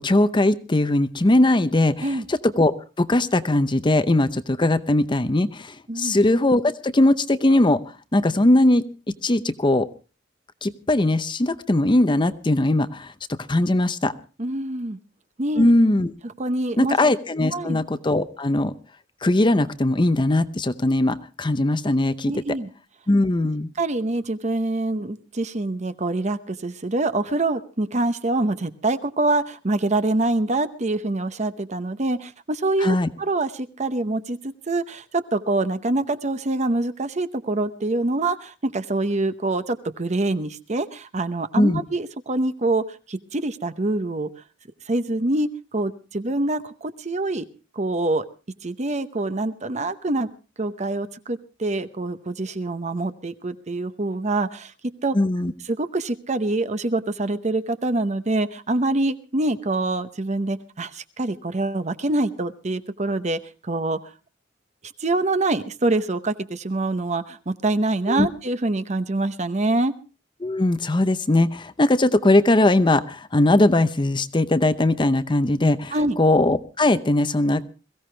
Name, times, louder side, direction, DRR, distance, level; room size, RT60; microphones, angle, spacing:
voice 1, 0.0-7.8 8.1-8.8 9.2-9.9 10.6-14.1 15.6-16.1 16.8-18.7 19.2-22.4 23.1-23.7 32.8-33.1 41.5-41.8 55.1-55.5 68.1-68.3 70.4-77.6, left 1 dB, 25° left, 12 dB, 0.7 m, -20 dB
voice 2, 5.9-6.2 14.4-15.0 15.4-15.7 16.2-17.0 17.5-17.8 22.3-22.7 23.8-44.3 44.9-47.4 47.8-48.2 48.6-50.3 50.6-55.2 55.7-64.0 65.0-69.9 75.9-76.2, right 2 dB, 40° right, 11 dB, 0.8 m, -25 dB
22.0 x 15.5 x 3.3 m, 0.34 s
head